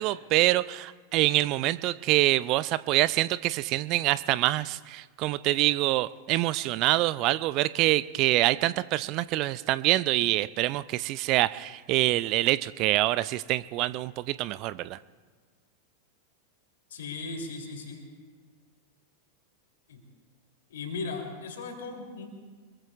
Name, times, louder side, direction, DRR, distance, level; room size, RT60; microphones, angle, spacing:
voice 1, 0.0-15.0, right 17 dB, 40° right, 18 dB, 0.4 m, -25 dB
voice 2, 16.9-18.0 19.9-20.0 20.7-22.3, left 4 dB, 60° left, 2 dB, 3.1 m, -37 dB
25.0 x 22.0 x 2.4 m, 1.5 s
figure-of-eight pair, 90°, 0 cm